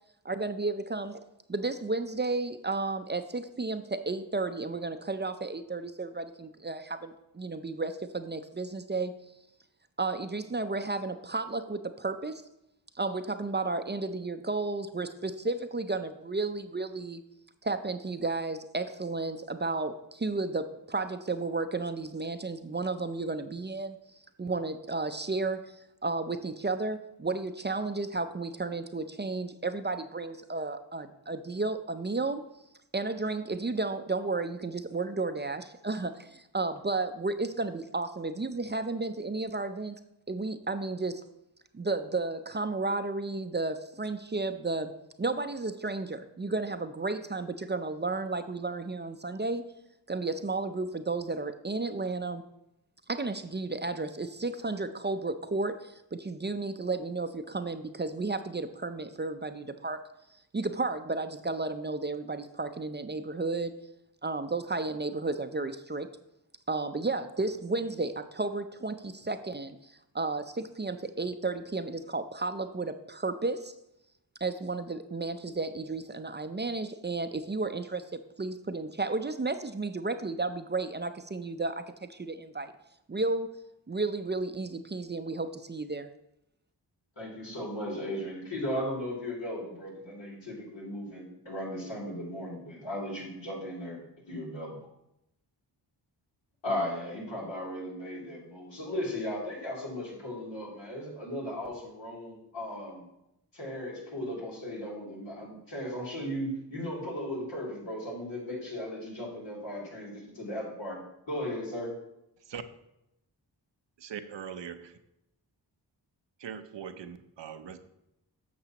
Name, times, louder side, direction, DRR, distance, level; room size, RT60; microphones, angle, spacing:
voice 1, 0.2-9.1 10.0-12.4 13.0-17.2 17.6-24.0 24.4-25.8 26.0-32.4 32.9-40.0 40.3-41.2 41.7-49.6 50.1-52.4 53.1-60.0 60.5-63.8 64.2-66.1 66.7-73.7 74.4-82.7 83.1-83.6 83.9-86.1, right 3 dB, 25° right, 9 dB, 0.5 m, -33 dB
voice 2, 87.2-94.0 94.3-94.8 96.6-103.0 103.5-111.9, left 1 dB, 85° left, -5 dB, 3.1 m, -36 dB
voice 3, 114.0-114.9 116.4-117.8, right 8 dB, 80° right, 10 dB, 0.7 m, -41 dB
10.0 x 6.7 x 2.9 m, 0.84 s
cardioid pair, 45°, 43 cm